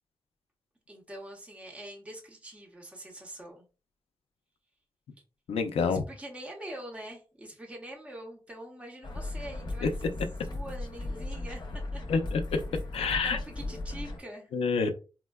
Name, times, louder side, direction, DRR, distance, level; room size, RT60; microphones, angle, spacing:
voice 1, 0.9-3.6 5.8-10.1 10.4-12.0 13.2-14.5, right 1 dB, 10° right, 0.7 m, -44 dB
voice 2, 5.5-6.0 9.8-9.9 12.1-12.4 12.9-13.4 14.5-14.9, left 5 dB, 85° left, 0.5 m, -27 dB
sound 1, 9.0-14.2, left 2 dB, 50° left, 0.7 m, -37 dB
4.2 x 2.1 x 2.2 m
wide cardioid pair, 125°, 10 cm